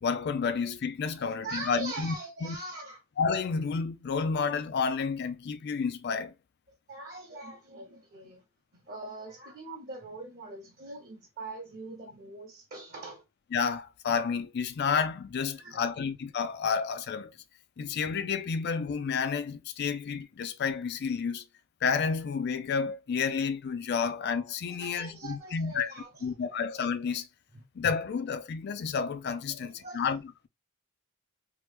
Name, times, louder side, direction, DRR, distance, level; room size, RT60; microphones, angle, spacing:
voice 1, 0.0-2.1 2.4-2.6 3.2-6.3 13.5-17.3 17.8-21.4 21.8-25.9 26.2-27.3 27.8-30.5, left 5 dB, 50° left, 0.4 m, -30 dB
voice 2, 1.2-3.0 6.9-8.4 8.7-13.2 15.5-16.0 24.7-26.6 27.5-27.6 29.5-30.0, right 2 dB, 45° right, 0.9 m, -42 dB
3.0 x 2.1 x 3.2 m
head